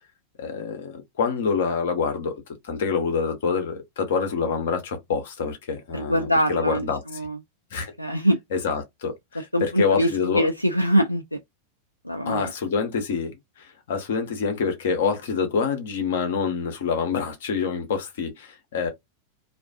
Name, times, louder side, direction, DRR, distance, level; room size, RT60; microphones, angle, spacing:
voice 1, 0.4-7.0 7.7-7.9 8.5-10.5 12.2-18.9, left 5 dB, 55° left, 0.9 m, -26 dB
voice 2, 5.9-7.4 8.0-8.4 9.5-11.4 12.0-12.5, equal, 85° left, 0.3 m, -23 dB
2.6 x 2.4 x 2.3 m
figure-of-eight pair, 90°, 0 cm